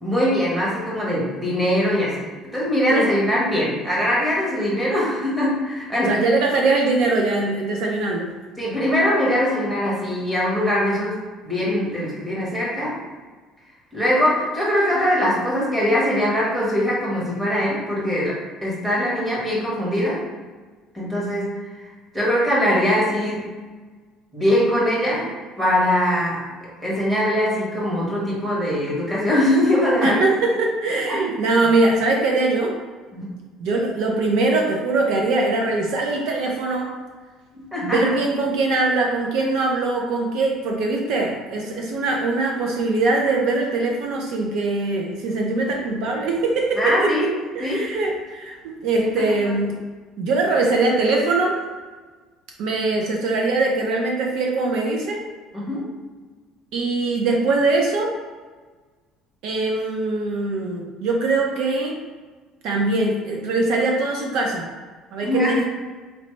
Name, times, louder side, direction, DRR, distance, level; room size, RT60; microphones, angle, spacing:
voice 1, 0.0-2.3 2.5-6.1 8.6-11.2 11.4-13.0 13.9-18.4 18.6-20.2 20.9-21.6 22.1-23.5 24.3-25.3 25.6-26.4 26.8-30.2 31.1-31.2 33.1-33.3 37.5-38.0 46.8-47.3 47.6-47.9 49.2-49.5 55.5-55.9 65.2-65.5, equal, 10° right, -7 dB, 1.4 m, -22 dB
voice 2, 6.1-8.3 30.0-32.8 33.6-36.9 37.8-47.3 47.5-49.8 50.2-51.6 52.6-55.2 56.7-58.1 59.4-62.0 62.6-64.7 65.1-65.7, right 3 dB, 65° right, 0 dB, 0.6 m, -22 dB
4.0 x 3.1 x 3.2 m, 1.4 s
cardioid pair, 155°, 0 cm